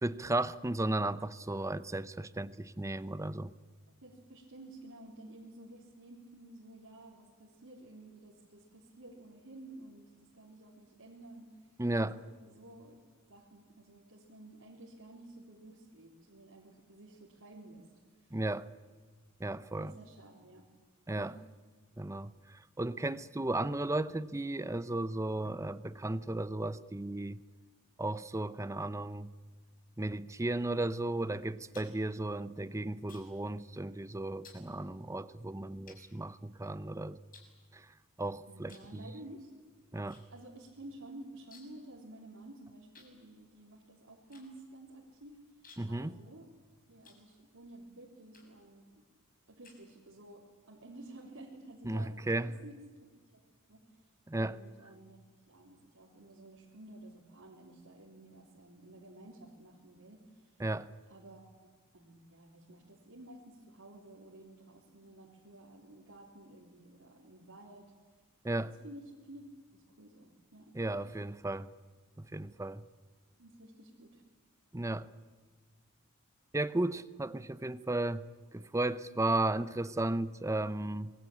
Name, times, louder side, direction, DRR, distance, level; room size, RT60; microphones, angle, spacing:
voice 1, 0.0-3.5 11.8-12.2 18.3-18.7 19.4-19.9 21.1-21.3 22.0-27.4 28.0-29.3 30.0-37.2 37.7-37.9 38.2-39.1 39.9-40.2 45.8-46.1 51.8-52.6 54.3-54.6 60.6-60.9 68.4-68.7 70.7-71.7 72.2-72.8 74.7-75.1 76.5-78.3 78.5-81.1, right 2 dB, 15° right, 0.7 m, -34 dB
voice 2, 4.0-11.8 12.0-13.0 13.3-18.4 19.8-20.7 21.2-21.4 31.0-31.3 38.5-39.5 40.3-46.5 46.9-49.0 49.5-52.8 53.7-54.1 54.4-55.2 55.5-60.6 61.1-61.7 61.9-67.9 68.7-69.4 69.7-71.2 73.4-74.2 80.6-80.7, right 1 dB, 70° right, 3.8 m, -53 dB
sound 1, 31.7-33.5 33.8-34.1 34.4-34.7 35.3-35.4 35.9-36.8 37.3-38.2 38.6-39.0 39.2-40.2 40.5-40.6 40.8-41.9 42.2-42.3 42.9-47.7 48.3-48.7 49.2-50.3, left 5 dB, 40° left, 6.0 m, -60 dB
26.5 x 21.0 x 8.7 m
head